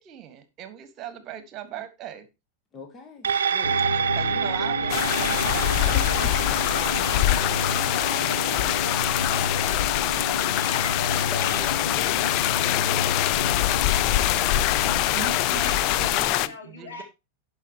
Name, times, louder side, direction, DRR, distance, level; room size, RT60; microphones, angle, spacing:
voice 1, 0.0-2.3 4.1-6.0 14.9-17.0, right 10 dB, 35° right, 1.5 m, -39 dB
voice 2, 2.7-3.8 5.9-6.7 11.3-12.2, left 3 dB, 20° left, 1.5 m, -42 dB
sound 1, 3.2-11.9 12.3-12.4, right 7 dB, 65° right, 0.7 m, -30 dB
sound 2, 3.6-16.2, left 3 dB, 80° left, 1.0 m, -32 dB
sound 3, 4.9-16.5, left 15 dB, 40° left, 0.5 m, -24 dB
voice 3, 6.5-11.7 16.4-17.0, left 4 dB, 60° left, 3.9 m, -39 dB
17.5 x 5.8 x 3.0 m
figure-of-eight pair, 90°, 0 cm